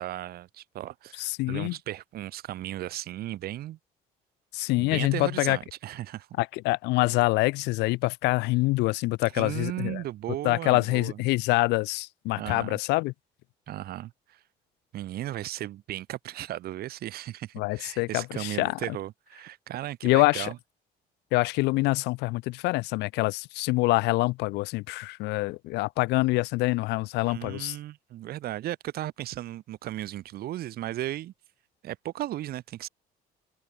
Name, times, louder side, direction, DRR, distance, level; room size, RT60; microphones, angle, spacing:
voice 1, 0.0-3.8 4.8-6.3 9.3-11.2 12.4-12.8 13.7-14.4 14.9-20.6 27.2-31.3 31.8-32.9, right 14 dB, 65° right, 1.2 m, -36 dB
voice 2, 1.2-1.8 4.5-5.6 6.4-10.0 10.4-13.1 17.6-19.0 20.0-20.5 21.3-27.8, left 22 dB, 90° left, 0.6 m, -26 dB
open air
cardioid pair, 110°, 17 cm